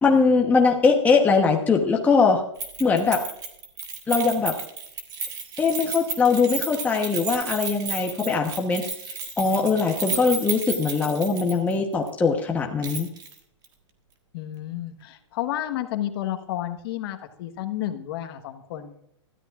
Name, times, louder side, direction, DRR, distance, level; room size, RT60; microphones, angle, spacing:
voice 1, 0.0-2.4 2.8-3.2 4.1-4.6 5.6-8.8 9.4-13.1, left 4 dB, 10° left, 1 dB, 1.1 m, -21 dB
Keys jangling, 2.6-11.8 12.1-12.2 12.8-13.3 13.6-13.7, right 5 dB, 25° right, 1.6 m, -33 dB
voice 2, 14.3-19.0, left 12 dB, 50° left, 8 dB, 1.4 m, -31 dB
19.5 x 13.5 x 2.5 m, 0.72 s
hypercardioid pair, 135°, 16 cm